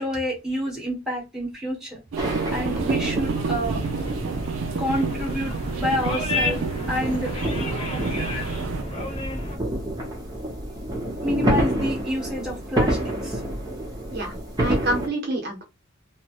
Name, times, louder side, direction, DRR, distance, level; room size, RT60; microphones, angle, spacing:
voice 1, 0.0-2.0 2.3-3.8 4.8-6.6 6.9-7.3 11.2-13.4, equal, 5° right, 1.2 m, -28 dB
sound 1, 2.1-8.8, right 5 dB, 70° right, 0.4 m, -30 dB
sound 2, 2.2-15.1, right 1 dB, 20° right, 0.8 m, -29 dB
sound 3, 3.2-9.6, left 2 dB, 30° left, 0.7 m, -31 dB
voice 2, 14.1-15.6, right 1 dB, 50° right, 0.8 m, -28 dB
2.9 x 2.1 x 2.9 m
head